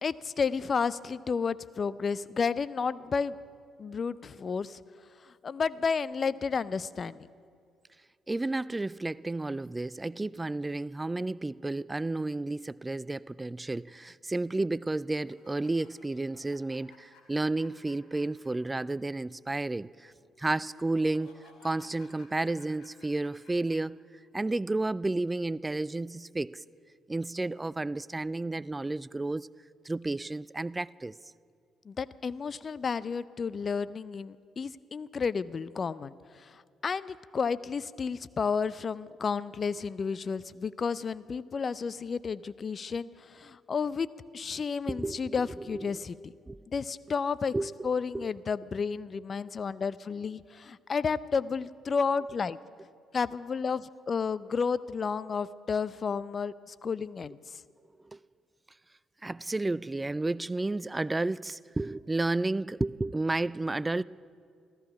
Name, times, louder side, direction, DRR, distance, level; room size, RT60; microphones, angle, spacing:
voice 1, 0.0-3.4 3.8-4.8 5.2-7.3 31.9-44.1 44.3-46.3 46.7-47.5 47.8-52.6 53.1-57.6, left 5 dB, 45° left, 0.5 m, -32 dB
voice 2, 8.3-20.1 20.4-21.4 21.6-24.0 24.3-26.6 27.1-29.5 29.8-31.1 44.9-45.4 45.7-46.0 46.5-46.6 47.5-48.3 58.0-58.2 59.2-64.0, right 2 dB, 20° right, 0.3 m, -32 dB
sound 1, 15.2-18.9 19.1-19.2 20.6-23.7, left 4 dB, 70° left, 2.3 m, -58 dB
14.5 x 14.0 x 6.0 m
hypercardioid pair, 50°, 0 cm